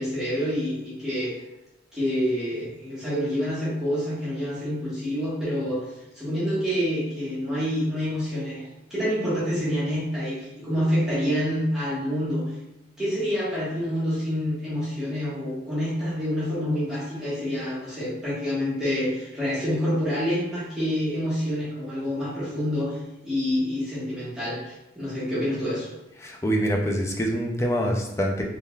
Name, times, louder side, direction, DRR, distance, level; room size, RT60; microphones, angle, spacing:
voice 1, 0.0-1.3 1.9-12.5 13.0-25.9, equal, 5° right, -10 dB, 1.2 m, -27 dB
voice 2, 26.2-28.5, equal, 15° left, 1 dB, 0.4 m, -25 dB
3.6 x 3.4 x 2.3 m, 0.94 s
head